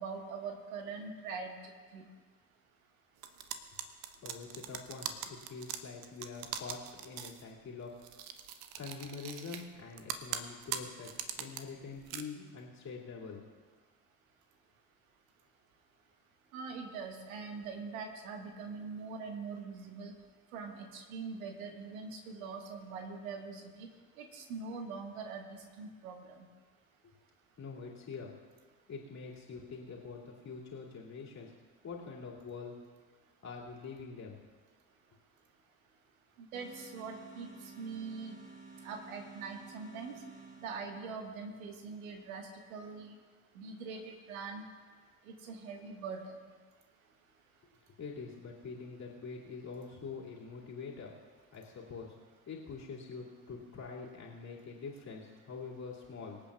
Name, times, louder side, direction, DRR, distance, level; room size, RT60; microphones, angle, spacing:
voice 1, 0.0-1.5 1.9-2.0 16.5-20.1 20.5-23.9 24.2-26.1 36.4-37.5 37.8-38.4 38.8-40.1 40.6-43.2 43.5-44.6 45.3-46.3, right 5 dB, 75° right, 4 dB, 1.6 m, -43 dB
sound 1, 3.2-7.4 8.0-9.7 10.0-11.6 12.0-12.2, right 10 dB, 55° right, 1.0 m, -41 dB
voice 2, 4.2-8.0 8.8-13.4 27.6-28.3 28.9-31.5 31.8-32.8 33.4-34.4 48.0-51.1 51.5-52.2 52.5-56.4, left 5 dB, 40° left, -4 dB, 2.5 m, -45 dB
sound 2, 36.5-41.2, right 4 dB, 20° right, 3.3 m, -53 dB
25.0 x 8.6 x 2.4 m, 1.5 s
figure-of-eight pair, 55°, 43 cm